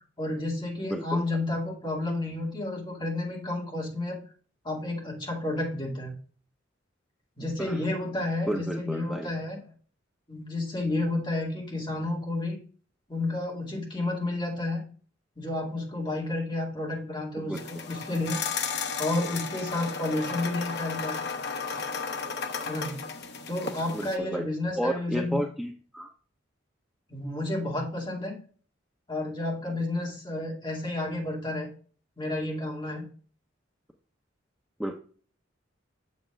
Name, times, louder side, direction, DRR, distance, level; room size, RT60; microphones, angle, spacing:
voice 1, 0.2-4.2 4.6-6.1 7.4-9.7 10.3-12.6 13.1-14.8 15.4-18.4 18.8-21.2 22.7-23.0 23.5-25.4 27.1-28.4 29.1-31.7 32.2-33.0, left 2 dB, 25° left, -2 dB, 2.5 m, -31 dB
voice 2, 0.9-1.2 7.6-7.8 8.5-9.3 17.4-17.6 23.9-24.4 24.8-26.1 34.8-35.0, equal, ahead, 1 dB, 0.7 m, -31 dB
sound 1, 17.5-24.2, left 5 dB, 60° left, 0.9 m, -34 dB
7.5 x 7.4 x 2.5 m, 0.42 s
head